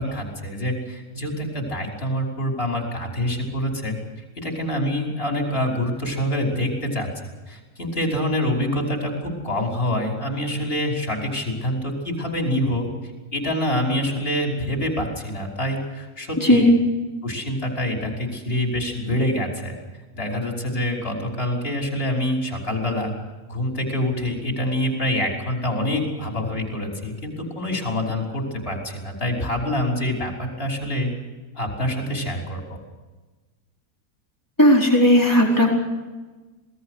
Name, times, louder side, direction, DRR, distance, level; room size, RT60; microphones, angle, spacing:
voice 1, 0.0-4.0 4.4-7.1 7.5-12.9 13.3-16.7 17.2-19.8 20.1-23.1 23.5-31.1 31.6-32.8, left 1 dB, 35° left, 0 dB, 5.7 m, -26 dB
voice 2, 34.6-35.7, left 1 dB, 10° left, -1 dB, 4.6 m, -15 dB
27.5 x 19.5 x 6.5 m, 1.2 s
omnidirectional pair, 1.7 m